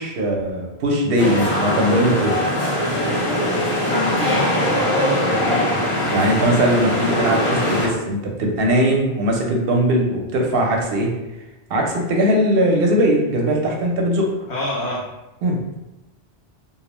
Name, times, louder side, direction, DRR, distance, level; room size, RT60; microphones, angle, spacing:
voice 1, 0.0-2.5 6.1-11.1 11.7-14.3 15.4-15.6, right 1 dB, 65° right, 1 dB, 0.7 m, -20 dB
sound 1, 1.2-7.9, equal, 40° left, 0.6 m, -21 dB
voice 2, 4.0-5.8 14.5-15.0, left 1 dB, 80° left, -5 dB, 0.9 m, -28 dB
2.5 x 2.0 x 2.9 m, 0.99 s
omnidirectional pair, 1.1 m